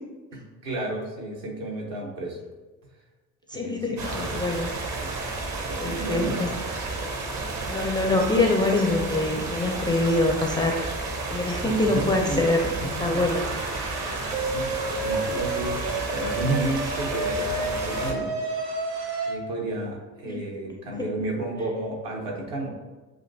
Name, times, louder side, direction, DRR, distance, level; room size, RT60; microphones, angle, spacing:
voice 1, 0.3-2.4 3.5-4.4 5.0-5.1 5.7-6.9 11.6-12.4 12.8-13.3 14.4-18.3 19.3-22.7, right 2 dB, 65° right, -2 dB, 1.3 m, -32 dB
voice 2, 3.5-4.7 5.8-6.5 7.7-10.8 11.3-13.4 20.3-20.4 21.0-21.1, left 2 dB, 10° left, 0 dB, 0.4 m, -24 dB
sound 1, 4.0-18.1, right 3 dB, 40° right, 0.9 m, -32 dB
sound 2, 13.1-19.3, right 2 dB, 85° right, 0.7 m, -31 dB
7.5 x 2.6 x 2.6 m, 1.3 s
figure-of-eight pair, 50°, 47 cm